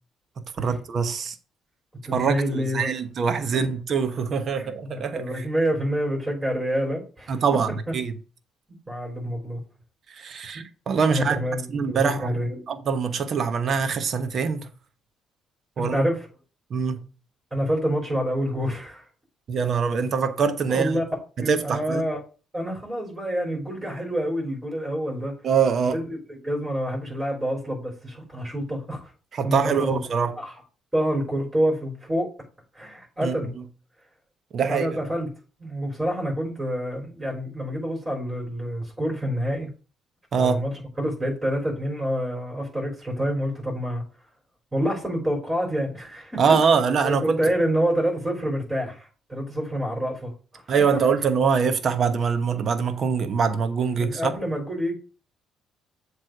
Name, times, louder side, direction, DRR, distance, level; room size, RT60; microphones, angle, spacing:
voice 1, 0.6-1.3 2.1-5.2 7.3-7.7 7.9-8.1 10.1-11.4 11.7-12.3 12.7-14.7 15.8-16.1 16.7-17.0 19.5-21.0 21.5-22.0 25.4-26.0 29.3-30.3 33.2-33.3 34.5-35.0 40.3-40.6 46.4-47.4 50.7-54.3, right 6 dB, 55° right, 1.0 m, -23 dB
voice 2, 2.1-2.9 3.5-3.6 4.6-7.4 8.9-9.6 10.5-10.6 11.1-12.6 15.8-16.3 17.5-19.1 20.7-21.0 21.4-22.2 22.5-25.4 25.8-29.1 29.4-30.0 30.3-30.5 30.9-32.3 32.7-33.5 34.7-35.3 35.6-39.7 40.4-44.0 44.7-46.4 47.0-50.6 50.9-51.0 54.0-55.0, equal, 20° right, 3.9 m, -27 dB
7.6 x 3.3 x 6.1 m
hypercardioid pair, 55°, 0 cm